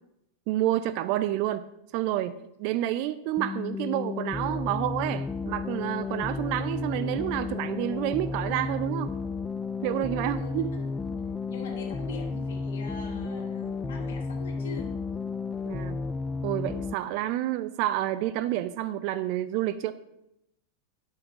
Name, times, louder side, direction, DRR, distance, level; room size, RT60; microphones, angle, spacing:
voice 1, 0.5-1.6 1.9-9.1 9.8-10.8 15.7-16.0 16.4-19.9, right 14 dB, 45° right, 13 dB, 0.4 m, -29 dB
sound 1, 3.4-17.0, left 4 dB, 15° left, 0.4 m, -33 dB
voice 2, 10.4-11.2 11.5-14.9, left 3 dB, 55° left, 3 dB, 1.7 m, -42 dB
8.0 x 5.7 x 5.8 m, 0.83 s
figure-of-eight pair, 90°, 0 cm